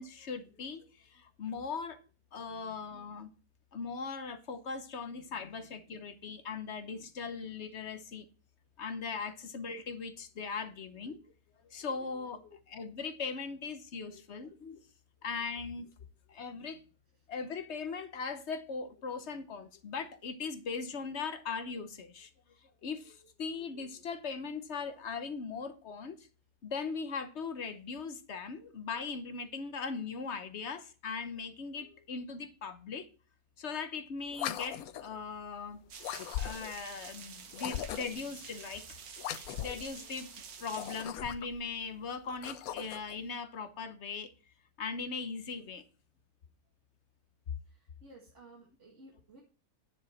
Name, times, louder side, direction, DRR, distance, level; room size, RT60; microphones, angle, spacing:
voice 1, 0.0-2.0 2.3-3.3 3.7-8.3 8.8-11.2 11.6-14.8 15.2-15.9 16.3-16.8 17.3-22.3 22.8-26.3 26.6-33.1 33.6-35.8 36.4-39.0 39.6-40.3 40.6-44.3 44.8-45.8, left 5 dB, 50° left, 1.1 m, -39 dB
sound 1, 34.3-35.2 36.0-36.8 37.5-38.3 39.2-39.9 40.6-41.6 42.2-43.2, left 11 dB, 75° left, 1.1 m, -39 dB
sound 2, 35.9-41.0, right 6 dB, 75° right, 1.5 m, -49 dB
voice 2, 47.7-49.4, right 2 dB, 50° right, 2.0 m, -56 dB
10.0 x 7.1 x 4.2 m
omnidirectional pair, 1.6 m